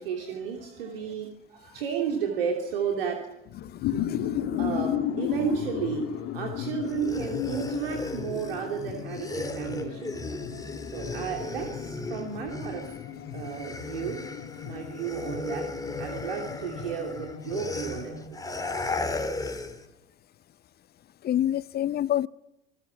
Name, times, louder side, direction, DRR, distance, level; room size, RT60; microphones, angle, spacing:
voice 1, 0.0-3.3 4.6-10.4 10.9-12.9 13.3-14.3 14.6-15.7 16.0-18.4, right 7 dB, 70° right, 3.1 m, -33 dB
sound 1, 3.4-18.2, left 10 dB, 50° left, 2.5 m, -35 dB
voice 2, 3.6-4.5 21.2-22.3, left 11 dB, 30° left, 0.8 m, -28 dB
sound 2, 6.8-13.1 13.3-19.9, left 3 dB, 10° left, 3.2 m, -36 dB
27.5 x 20.0 x 7.1 m
figure-of-eight pair, 65°, 30 cm